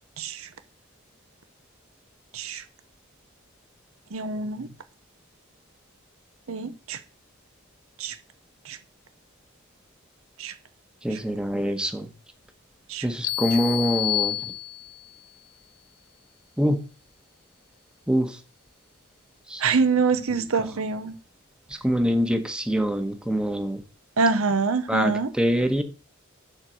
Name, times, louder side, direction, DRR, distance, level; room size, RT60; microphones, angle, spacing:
voice 1, 0.2-0.5 2.3-2.6 4.1-4.7 6.5-7.0 8.0-8.2 8.7-8.8 10.4-10.5 11.1-11.2 12.9-13.1 19.6-21.1 24.2-25.3, right 4 dB, 70° right, 0.8 m, -25 dB
voice 2, 11.0-12.1 13.0-14.4 16.6-16.8 18.1-18.4 19.5-19.7 20.4-20.7 21.8-23.8 24.9-25.8, equal, 5° right, 1.1 m, -25 dB
sound 1, 13.2-15.1, left 14 dB, 75° left, 0.6 m, -28 dB
11.0 x 4.5 x 6.3 m
head